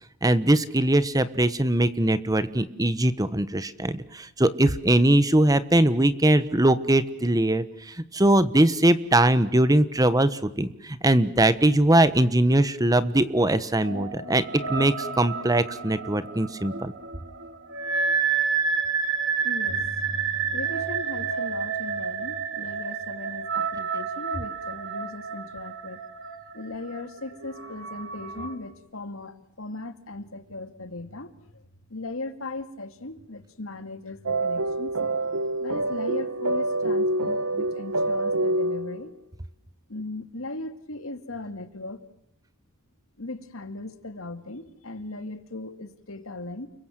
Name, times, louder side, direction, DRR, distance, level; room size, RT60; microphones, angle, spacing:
voice 1, 0.2-14.4 14.7-16.9, right 1 dB, 15° right, 13 dB, 1.2 m, -21 dB
sound 1, 13.8-28.6, right 5 dB, 55° right, 3.3 m, -30 dB
voice 2, 19.4-19.8 20.5-26.0 26.5-31.6 31.9-35.0 35.6-39.1 39.9-42.0 43.2-46.7, left 2 dB, 70° left, 9 dB, 2.3 m, -38 dB
sound 2, 34.3-39.1, right 2 dB, 85° right, 1.3 m, -26 dB
30.0 x 23.0 x 7.7 m, 0.82 s
head